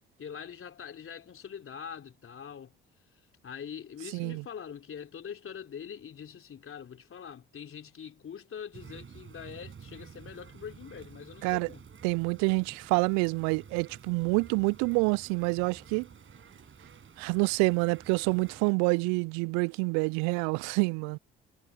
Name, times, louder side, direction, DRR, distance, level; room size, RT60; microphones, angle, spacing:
voice 1, 0.2-2.8 3.4-11.8, left 7 dB, 45° left, 3.6 m, -43 dB
sound 1, 8.7-18.7, right 6 dB, 40° right, 7.2 m, -51 dB
voice 2, 12.0-16.1 17.2-21.2, right 33 dB, 65° right, 0.5 m, -27 dB
hypercardioid pair, 45°, 30 cm